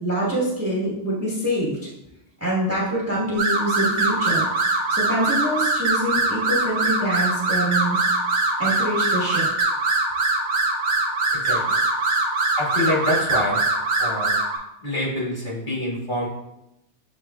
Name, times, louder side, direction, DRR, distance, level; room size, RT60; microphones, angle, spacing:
voice 1, 0.0-1.8 2.4-4.5 4.9-8.0 8.6-9.5, right 1 dB, 15° right, -6 dB, 1.0 m, -25 dB
sound 1, 3.4-14.6, right 3 dB, 65° right, 1.0 m, -22 dB
voice 2, 11.3-11.7 12.6-13.6 14.0-14.4 14.8-16.3, left 1 dB, 45° left, -6 dB, 1.7 m, -26 dB
7.4 x 3.0 x 2.3 m, 0.87 s
omnidirectional pair, 1.2 m